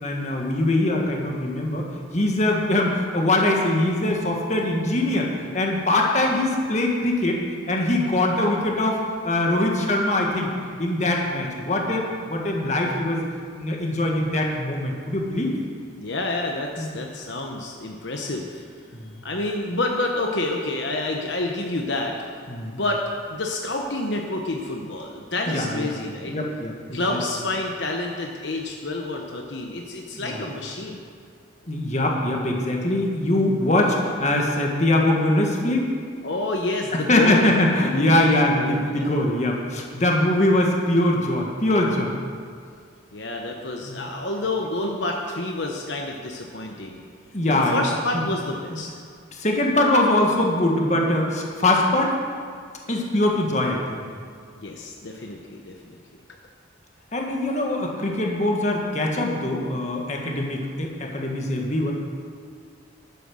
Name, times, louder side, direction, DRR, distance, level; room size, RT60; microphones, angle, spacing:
voice 1, 0.0-1.8 2.1-5.3 5.5-7.4 7.7-9.0 9.2-10.5 10.8-13.2 13.5-15.5 16.8-17.0 18.9-19.2 22.5-22.7 25.5-25.9 26.3-27.2 30.2-30.4 31.7-35.9 36.9-42.1 43.8-44.0 44.8-44.9 47.3-47.8 48.1-48.2 49.3-52.2 52.9-54.0 57.1-61.9, left 1 dB, 35° left, 0 dB, 1.7 m, -22 dB
voice 2, 16.0-18.6 19.2-22.2 22.7-23.0 23.3-26.3 26.9-31.0 36.2-37.5 37.8-38.3 38.6-39.1 43.1-47.0 47.5-48.9 54.6-56.0, left 2 dB, 70° left, 1 dB, 1.0 m, -28 dB
11.5 x 9.2 x 6.4 m, 2.2 s
head